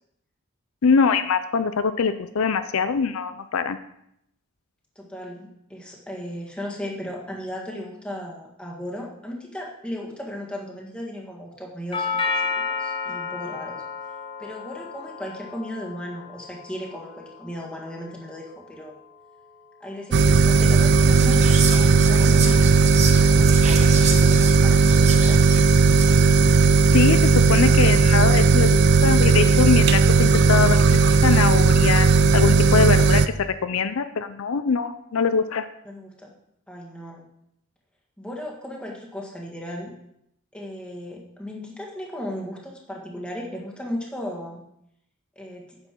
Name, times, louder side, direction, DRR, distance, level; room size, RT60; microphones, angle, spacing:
voice 1, 0.8-3.8 26.9-32.1 32.3-35.7, left 5 dB, 75° left, 11 dB, 0.5 m, -23 dB
voice 2, 5.0-13.8 14.4-18.9 19.8-25.4 35.9-36.3 36.7-37.3 38.2-39.9 40.5-44.6 45.4-45.7, equal, 5° left, -2 dB, 1.7 m, -36 dB
Doorbell, 11.9-20.0, left 5 dB, 25° left, 0.9 m, -33 dB
sound 1, 20.1-33.3, right 4 dB, 50° right, 0.4 m, -16 dB
Whispering, 21.0-26.2, right 5 dB, 30° right, 1.0 m, -30 dB
9.6 x 6.9 x 4.5 m, 0.77 s
head